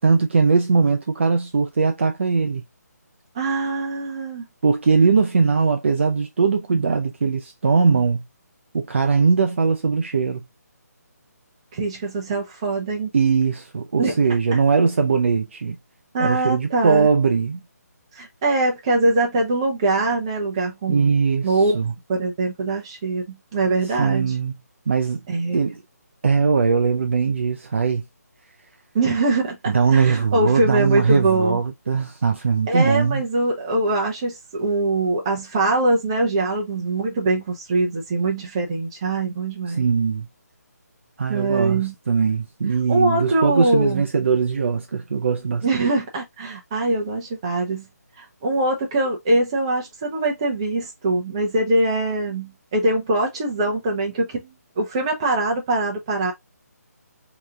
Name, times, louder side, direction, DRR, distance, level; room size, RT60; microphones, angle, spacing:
voice 1, 0.0-2.6 4.6-8.2 8.7-10.4 13.1-15.8 16.2-17.6 20.9-21.5 21.7-21.9 24.0-24.5 24.9-25.2 25.5-25.8 26.2-28.0 29.7-33.2 39.8-40.3 41.2-45.9, right 5 dB, 45° right, 0.5 m, -20 dB
voice 2, 3.3-4.5 6.7-6.8 11.7-13.1 14.0-14.1 14.5-14.6 16.1-17.1 18.1-21.1 21.4-21.8 22.1-24.4 25.3-25.6 28.9-31.6 32.7-39.8 41.3-41.9 42.9-44.0 45.6-47.9 48.2-54.4 54.8-56.3, right 2 dB, 20° right, 0.9 m, -23 dB
3.2 x 3.0 x 3.7 m
hypercardioid pair, 175°, 9 cm